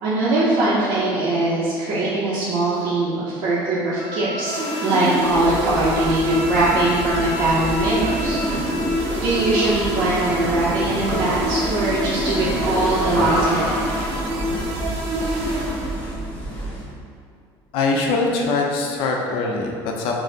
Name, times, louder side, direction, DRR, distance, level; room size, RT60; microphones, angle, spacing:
voice 1, 0.0-8.6 9.2-13.8, right 2 dB, 50° right, -9 dB, 0.6 m, -21 dB
Wind instrument woodwind instrument, 4.0-9.1, left 2 dB, 10° right, 0.9 m, -34 dB
sound 1, 4.4-16.3, equal, 85° right, 0.7 m, -26 dB
sound 2, 5.2-16.9, equal, 15° left, 0.5 m, -29 dB
voice 2, 17.7-20.1, left 3 dB, 70° left, 0 dB, 0.5 m, -22 dB
4.9 x 2.0 x 2.7 m, 2.3 s
cardioid pair, 165°, 10 cm